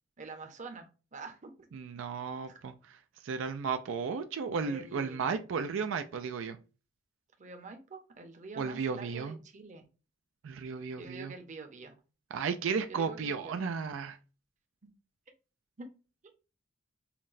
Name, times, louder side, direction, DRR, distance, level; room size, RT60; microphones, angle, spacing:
voice 1, 0.2-1.5 2.5-2.6 4.6-5.2 7.4-9.9 11.0-11.9 12.9-13.6 15.8-15.9, right 3 dB, 40° right, 0.7 m, -46 dB
voice 2, 1.7-3.0 3.2-6.6 8.6-9.4 10.4-11.3 12.3-14.2, right 5 dB, 85° right, 0.4 m, -34 dB
5.7 x 2.1 x 2.5 m
head